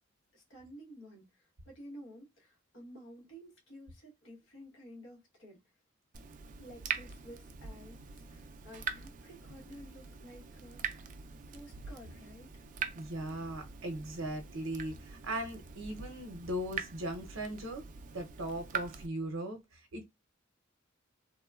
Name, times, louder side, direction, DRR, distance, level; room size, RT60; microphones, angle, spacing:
voice 1, 0.3-5.6 6.6-8.0 8.3-11.2 11.5-12.7, equal, 70° left, 1.1 m, -52 dB
Water tap faucet / Drip, 6.1-19.1, right 6 dB, 40° right, 0.4 m, -43 dB
voice 2, 12.9-17.8 18.1-20.0, right 1 dB, 85° right, 0.6 m, -38 dB
2.9 x 2.1 x 2.3 m
head